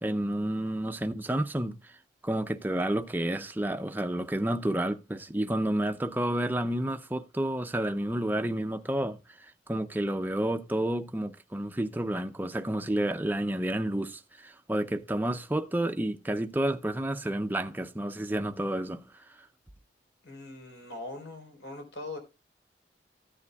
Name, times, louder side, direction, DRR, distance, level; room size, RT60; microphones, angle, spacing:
voice 1, 0.0-1.9 2.2-19.2, right 1 dB, 10° right, 0.5 m, -30 dB
voice 2, 20.2-22.2, left 2 dB, 80° left, 4.1 m, -41 dB
14.0 x 9.5 x 2.3 m
head